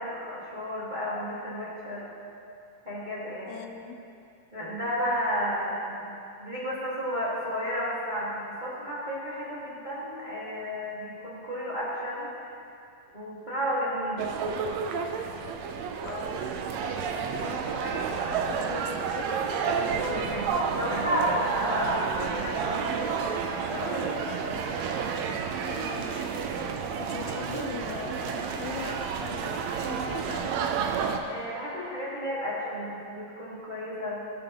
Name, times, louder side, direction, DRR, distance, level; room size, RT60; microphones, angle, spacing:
voice 1, 0.0-2.0 2.8-3.5 4.5-6.1 6.4-12.5 13.1-14.3 19.8-24.6 26.9-27.4 31.3-34.2, equal, 20° right, -9 dB, 1.2 m, -32 dB
voice 2, 3.5-4.0 16.0-16.5 17.4-19.3 25.7-26.3 26.6-26.7 27.0-30.6, left 7 dB, 80° left, 5 dB, 1.9 m, -40 dB
sound 1, 14.2-31.2, right 6 dB, 80° right, 1.5 m, -30 dB
17.0 x 8.0 x 3.0 m, 2.6 s
omnidirectional pair, 3.8 m